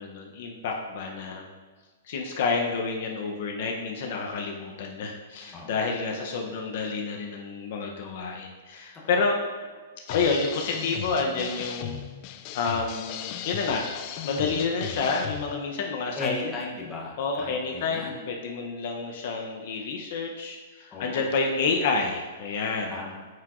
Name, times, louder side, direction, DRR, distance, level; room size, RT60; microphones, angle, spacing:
voice 1, 0.0-1.5 2.1-9.4 10.1-12.0 12.5-13.9 14.2-16.5 17.2-22.9, left 4 dB, 50° left, 1 dB, 0.7 m, -29 dB
sound 1, 10.1-15.6, left 10 dB, 30° left, 0.3 m, -37 dB
voice 2, 16.2-18.3 20.9-21.3 22.9-23.1, left 3 dB, 10° left, -4 dB, 0.8 m, -36 dB
9.2 x 4.7 x 2.5 m, 1.4 s
hypercardioid pair, 170°, 0 cm